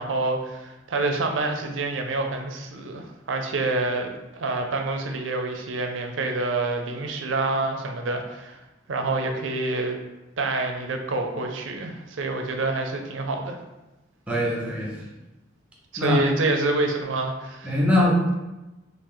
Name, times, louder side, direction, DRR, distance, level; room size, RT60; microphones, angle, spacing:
voice 1, 0.0-8.6 8.9-10.0 10.4-13.6 15.9-17.7, right 2 dB, 80° right, 4 dB, 0.5 m, -27 dB
voice 2, 14.3-15.0 16.0-16.2 17.6-18.2, left 1 dB, 5° right, -4 dB, 0.7 m, -22 dB
3.1 x 2.5 x 3.8 m, 1.0 s
head